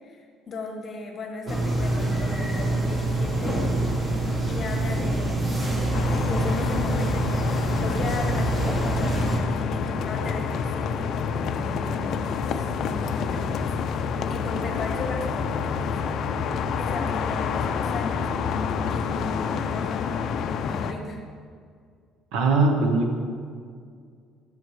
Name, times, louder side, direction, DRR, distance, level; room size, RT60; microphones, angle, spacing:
voice 1, 0.0-3.6 4.4-11.1 11.4-13.8 14.3-16.0 16.8-18.3 18.9-21.2, left 2 dB, 30° left, 2 dB, 1.0 m, -36 dB
sound 1, 1.5-9.4, right 2 dB, 15° right, 1.0 m, -25 dB
sound 2, 5.9-20.9, left 6 dB, 45° left, 0.4 m, -28 dB
voice 2, 22.3-23.2, right 3 dB, 85° right, 3 dB, 1.2 m, -21 dB
10.5 x 7.1 x 3.2 m, 2.1 s
cardioid pair, 170°, 0 cm